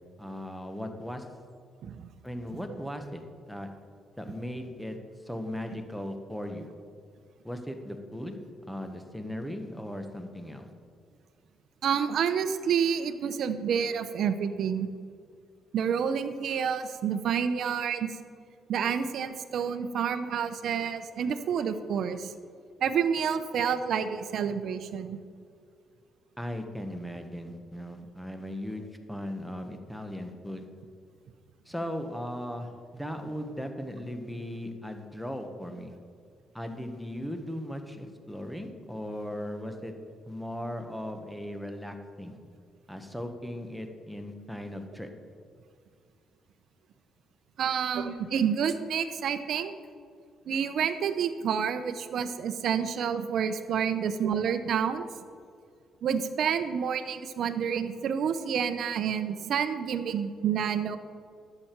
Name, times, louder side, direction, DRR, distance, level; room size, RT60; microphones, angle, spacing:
voice 1, 0.2-1.3 2.2-3.2 3.5-3.7 4.2-5.0 5.2-6.7 7.4-8.4 8.7-10.7 26.4-30.7 31.7-35.9 36.5-39.9 40.3-42.4 42.9-45.1, equal, ahead, 6 dB, 1.2 m, -37 dB
voice 2, 11.8-14.9 15.7-18.1 18.7-22.3 22.8-25.2 47.6-49.7 50.5-55.1 56.0-61.0, right 7 dB, 70° right, 11 dB, 0.7 m, -29 dB
11.5 x 7.8 x 4.6 m, 2.2 s
cardioid pair, 90°, 0 cm